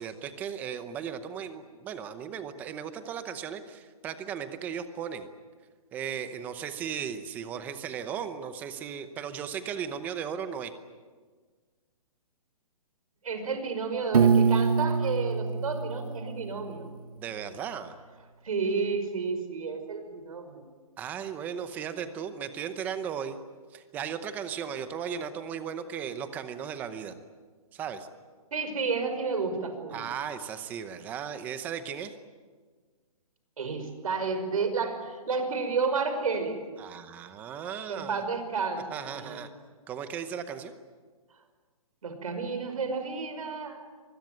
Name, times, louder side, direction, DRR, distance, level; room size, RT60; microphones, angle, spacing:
voice 1, 0.0-5.3 5.9-10.7 17.2-17.9 21.0-23.4 23.7-27.1 27.7-28.1 29.9-32.1 36.8-38.2 38.9-39.5 39.9-40.7, right 8 dB, 10° right, 11 dB, 0.8 m, -36 dB
voice 2, 13.2-16.9 18.4-20.6 28.5-30.0 33.6-36.6 37.9-38.8 39.1-39.4 42.0-43.8, right 4 dB, 65° right, 7 dB, 5.7 m, -31 dB
Piano, 14.1-17.1, right 5 dB, 85° right, 1.5 m, -25 dB
24.5 x 21.0 x 9.4 m, 1.5 s
hypercardioid pair, 170°, 19 cm